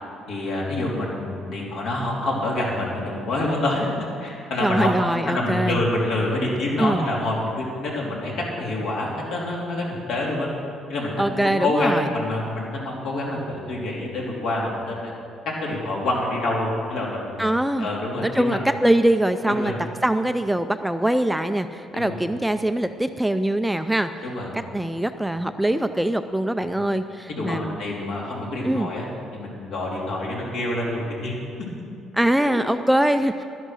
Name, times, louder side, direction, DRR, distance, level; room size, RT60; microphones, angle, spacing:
voice 1, 0.3-8.3 8.6-10.5 10.9-15.1 15.6-17.4 17.8-18.6 19.6-19.8 21.9-22.2 24.2-24.5 25.3-25.5 26.7-26.9 27.4-31.3 32.4-32.5, left 1 dB, 70° left, -3 dB, 3.3 m, -27 dB
voice 2, 4.6-5.8 6.8-7.1 11.2-12.1 17.4-17.9 18.2-19.7 20.0-24.1 24.7-27.8 28.6-28.9 32.1-33.3, right 1 dB, 5° right, 9 dB, 0.4 m, -22 dB
12.0 x 11.0 x 6.2 m, 2.4 s
cardioid pair, 135°, 0 cm